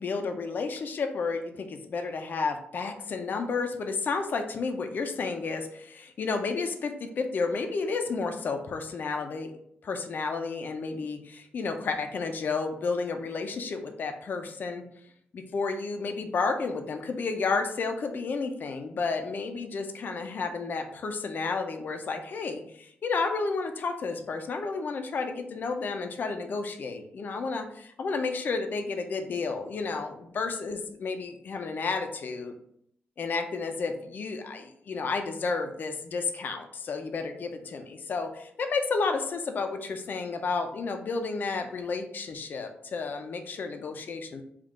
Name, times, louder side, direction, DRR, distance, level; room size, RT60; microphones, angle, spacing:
voice 1, 0.0-9.5 9.8-14.8 15.3-32.5 33.2-44.4, left 4 dB, 50° left, 5 dB, 0.5 m, -31 dB
3.6 x 2.4 x 3.6 m, 0.70 s
wide cardioid pair, 125°, 4 cm